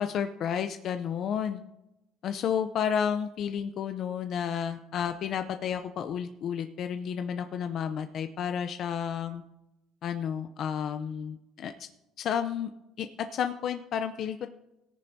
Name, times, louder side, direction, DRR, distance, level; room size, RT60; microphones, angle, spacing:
voice 1, 0.0-1.6 2.2-9.4 10.0-11.9 12.2-12.7 13.0-14.5, left 8 dB, 45° left, 8 dB, 0.5 m, -31 dB
17.5 x 10.0 x 2.7 m, 0.94 s
cardioid pair, 145°, 0 cm